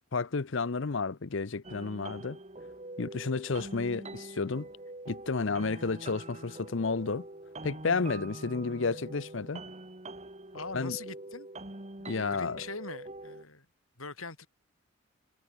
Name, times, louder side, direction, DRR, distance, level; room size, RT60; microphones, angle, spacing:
voice 1, 0.1-2.4 3.0-4.7 5.1-7.3 7.6-9.6 10.7-11.0 12.1-12.6, left 4 dB, 60° left, 0.7 m, -31 dB
sound 1, 1.6-13.4, right 2 dB, 30° right, 2.0 m, -44 dB
voice 2, 5.4-5.8 10.5-11.5 12.0-13.7 14.0-14.5, left 4 dB, 80° left, 6.2 m, -42 dB
head